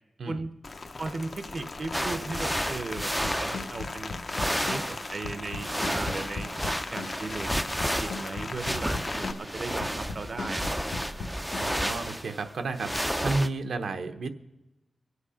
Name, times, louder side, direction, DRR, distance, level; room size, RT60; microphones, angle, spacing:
Rain, 0.6-9.3, left 3 dB, 40° left, 0.6 m, -39 dB
voice 1, 1.0-6.5 6.9-11.1, right 3 dB, 45° right, 10 dB, 0.7 m, -37 dB
sound 1, 1.9-4.0 4.3-13.5, equal, ahead, 0.4 m, -32 dB
sound 2, 3.0-11.8, left 4 dB, 75° left, 0.9 m, -38 dB
voice 2, 11.6-12.9 13.2-14.3, right 3 dB, 85° right, 7 dB, 0.9 m, -31 dB
24.0 x 8.3 x 5.0 m, 0.99 s
wide cardioid pair, 160°, 0 cm